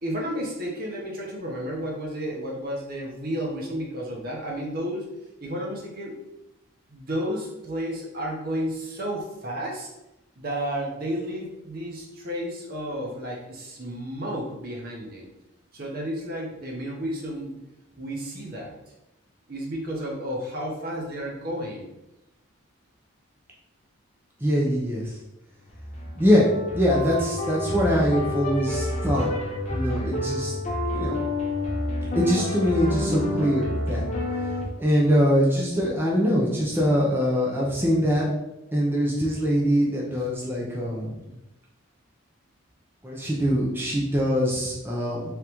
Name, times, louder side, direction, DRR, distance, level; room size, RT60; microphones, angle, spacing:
voice 1, 0.0-5.1 5.4-6.1 6.9-9.9 10.4-15.3 15.7-17.5 18.0-18.7 19.5-21.9 40.2-40.3 41.1-41.4, equal, 45° right, -2 dB, 0.8 m, -32 dB
voice 2, 24.4-25.1 26.2-26.5 26.7-29.3 29.7-30.5 30.9-31.2 32.2-34.0 34.8-38.3 38.7-41.2 43.0-45.3, equal, 10° right, -4 dB, 0.6 m, -23 dB
sound 1, 25.6-34.7, left 1 dB, 35° left, 0.7 m, -29 dB
3.7 x 3.5 x 3.0 m, 0.92 s
head